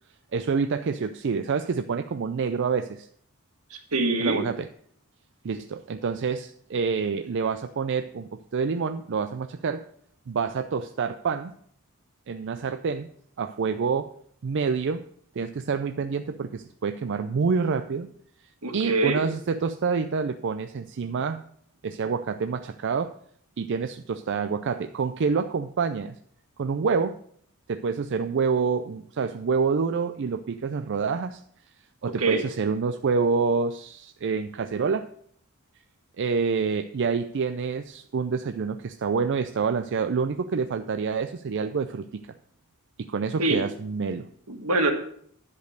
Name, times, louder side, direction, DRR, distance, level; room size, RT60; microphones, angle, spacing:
voice 1, 0.3-3.1 4.2-4.7 5.4-9.8 10.3-11.5 12.3-13.1 13.4-14.1 14.4-15.0 15.4-18.1 18.7-21.4 21.8-23.1 23.6-26.2 26.6-27.2 27.7-31.4 32.0-35.1 36.2-42.2 43.1-44.3, right 5 dB, 55° right, 9 dB, 0.4 m, -27 dB
voice 2, 3.7-4.4 18.6-19.2 32.2-32.4 43.4-43.6 44.5-44.9, right 2 dB, 80° right, 5 dB, 1.6 m, -24 dB
10.5 x 5.2 x 6.5 m, 0.63 s
head